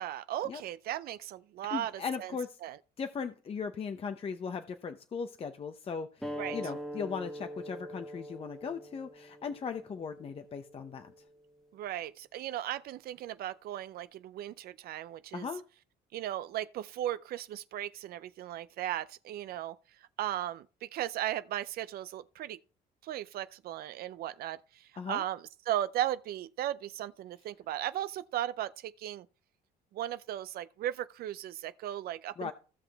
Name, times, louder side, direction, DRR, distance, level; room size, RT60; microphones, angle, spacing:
voice 1, 0.0-1.9 2.2-2.3 2.6-2.8 6.4-6.6 11.7-15.5 16.1-19.8 20.2-22.6 23.0-29.3 29.9-32.5, right 12 dB, 65° right, 0.4 m, -36 dB
voice 2, 1.7-2.6 3.0-11.1 15.3-15.6 25.0-25.2 32.4-32.5, left 6 dB, 35° left, 0.7 m, -38 dB
sound 1, 6.2-11.3, equal, ahead, 1.2 m, -43 dB
15.5 x 5.8 x 3.4 m
cardioid pair, 110°, 17 cm